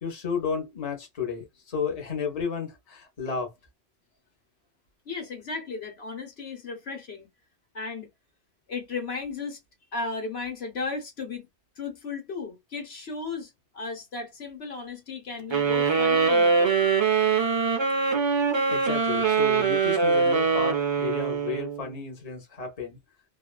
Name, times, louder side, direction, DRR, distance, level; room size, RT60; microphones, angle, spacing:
voice 1, 0.0-3.5 18.7-23.0, left 5 dB, 35° left, 1.1 m, -32 dB
voice 2, 5.1-7.3 7.7-8.1 8.7-9.6 9.9-11.5 11.8-16.9, left 4 dB, 70° left, 1.3 m, -35 dB
sound 1, 15.5-21.9, right 5 dB, 40° right, 0.4 m, -23 dB
2.7 x 2.4 x 2.2 m
omnidirectional pair, 1.1 m